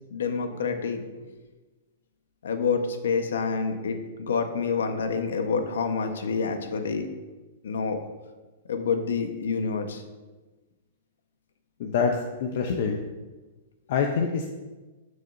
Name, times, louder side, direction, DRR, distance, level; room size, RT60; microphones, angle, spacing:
voice 1, 0.1-1.0 2.4-7.1 7.6-8.0 8.7-10.0, left 5 dB, 90° left, 6 dB, 1.1 m, -27 dB
voice 2, 11.8-13.0 13.9-14.5, left 6 dB, 50° left, 3 dB, 0.7 m, -26 dB
12.5 x 6.4 x 2.7 m, 1.2 s
hypercardioid pair, 165°, 0 cm